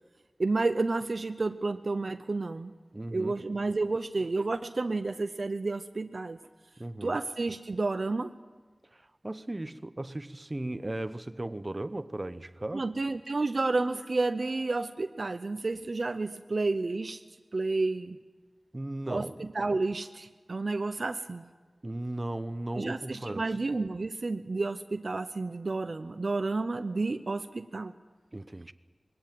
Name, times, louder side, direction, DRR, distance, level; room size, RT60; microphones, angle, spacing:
voice 1, 0.4-2.7 3.1-6.4 7.0-8.3 12.7-17.2 17.5-18.2 19.1-21.4 22.8-27.9, right 3 dB, 60° right, 0.7 m, -31 dB
voice 2, 2.9-3.3 6.8-7.2 8.9-12.8 18.7-19.4 21.8-23.4 28.3-28.7, right 1 dB, 30° right, 0.9 m, -36 dB
21.0 x 17.5 x 9.2 m
cardioid pair, 45°, 0 cm